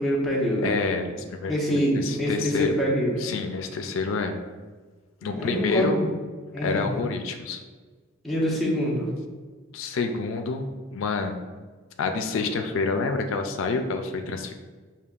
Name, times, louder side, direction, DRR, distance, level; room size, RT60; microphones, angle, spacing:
voice 1, 0.0-0.7 1.5-3.2 5.3-6.1 6.5-6.8 8.2-9.1, equal, ahead, -6 dB, 0.9 m, -25 dB
voice 2, 0.6-1.6 2.0-2.7 3.2-4.4 5.2-6.0 6.6-7.6 9.7-11.4 12.0-14.5, left 4 dB, 80° left, 6 dB, 0.4 m, -28 dB
6.7 x 2.8 x 2.4 m, 1.4 s
head